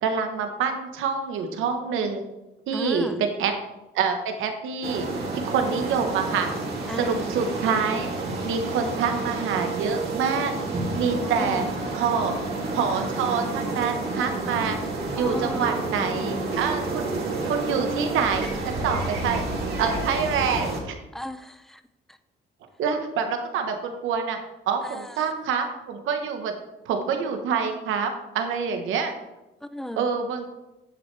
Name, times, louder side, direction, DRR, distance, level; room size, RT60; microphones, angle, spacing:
voice 1, 0.0-2.2 2.7-3.5 3.9-5.1 5.3-6.5 7.0-8.1 8.4-10.5 10.9-11.7 11.9-12.4 12.7-14.8 15.2-17.1 17.4-19.4 19.8-20.9 22.8-24.4 24.7-26.5 26.8-29.1 30.0-30.5, right 6 dB, 85° right, 5 dB, 1.2 m, -26 dB
voice 2, 2.7-3.2 6.9-7.3 11.1-11.7 15.2-15.7 21.1-21.8 22.1-22.2 24.8-25.3 29.6-30.1, left 1 dB, ahead, 11 dB, 0.6 m, -36 dB
sound 1, 4.8-20.8, right 2 dB, 55° right, 2.6 m, -30 dB
10.0 x 7.4 x 3.3 m, 0.98 s
cardioid pair, 90°, 20 cm